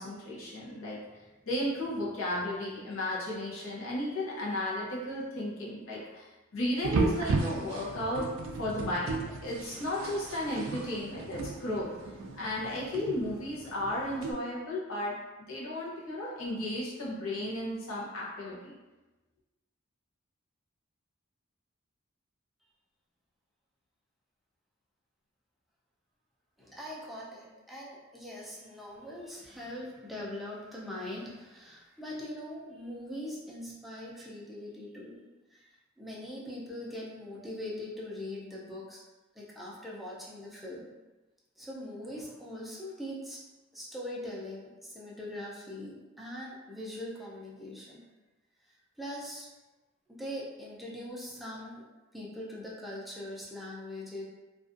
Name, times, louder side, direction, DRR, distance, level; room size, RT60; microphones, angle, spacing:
voice 1, 0.0-8.3 8.6-11.9 12.3-15.2 15.5-18.7, left 1 dB, 75° left, -6 dB, 0.7 m, -34 dB
sound 1, 6.8-14.3, right 3 dB, 70° right, 0.3 m, -35 dB
voice 2, 26.6-35.2 35.5-39.0 39.3-40.9 41.6-43.4 43.7-48.1 49.0-49.5 50.1-51.8 52.1-54.2, left 1 dB, ahead, -6 dB, 0.4 m, -41 dB
2.5 x 2.3 x 2.5 m, 1.1 s
head